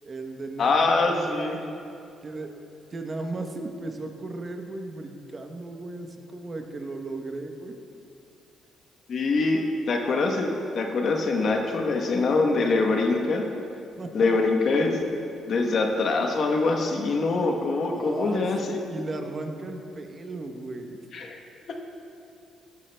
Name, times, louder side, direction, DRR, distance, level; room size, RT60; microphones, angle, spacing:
voice 1, 0.0-1.7 2.2-2.5 2.9-7.7 14.0-14.4 17.9-21.0, right 2 dB, 35° right, 4 dB, 0.9 m, -36 dB
voice 2, 0.6-1.6 9.1-13.5 14.1-15.1 15.5-18.8 21.1-21.4 21.7-21.8, left 3 dB, 55° left, 3 dB, 1.0 m, -24 dB
15.5 x 9.3 x 2.2 m, 2.6 s
cardioid pair, 90°, 0 cm